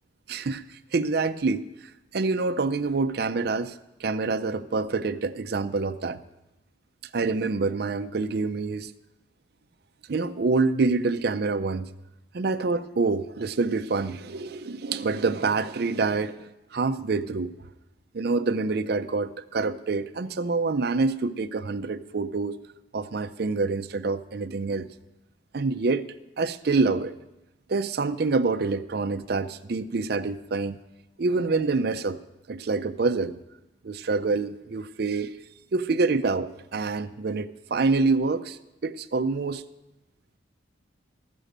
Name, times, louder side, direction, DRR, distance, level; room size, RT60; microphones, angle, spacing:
voice 1, 0.3-1.7 2.1-6.2 7.1-8.9 10.1-11.9 12.3-17.5 18.1-22.6 22.9-24.9 25.5-26.1 26.4-27.1 27.7-30.8 31.2-32.2 32.5-33.4 33.8-35.3 35.7-39.6, right 3 dB, 55° right, 0.5 m, -26 dB
14.0 x 6.2 x 6.6 m
head